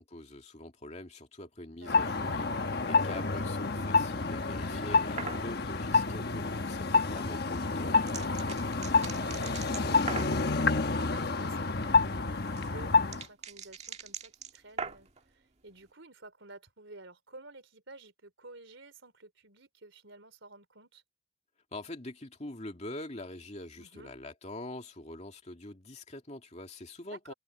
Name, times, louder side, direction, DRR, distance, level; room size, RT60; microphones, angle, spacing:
voice 1, 0.0-8.2 21.7-27.3, left 1 dB, 35° left, 2.5 m, -44 dB
voice 2, 1.8-2.2 3.2-3.4 6.2-6.5 8.8-21.0 23.8-24.1 27.1-27.3, right 2 dB, 70° right, 4.1 m, -52 dB
sound 1, 1.9-13.2, left 4 dB, 50° left, 1.1 m, -28 dB
sound 2, 5.2-5.5 7.4-10.4 12.0-15.2, right 5 dB, 35° right, 1.8 m, -41 dB
head